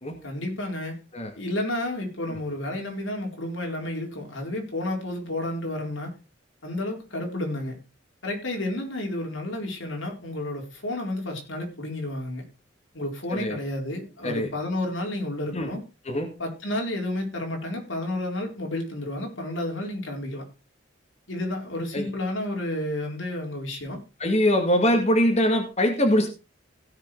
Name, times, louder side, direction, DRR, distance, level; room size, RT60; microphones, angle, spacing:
voice 1, 0.2-1.0 1.3-6.1 6.6-7.7 8.2-12.4 12.9-15.8 16.4-20.4 21.3-24.0, left 1 dB, 85° left, 4.4 m, -31 dB
voice 2, 24.2-26.3, equal, 35° left, 2.0 m, -22 dB
16.5 x 6.7 x 4.6 m
head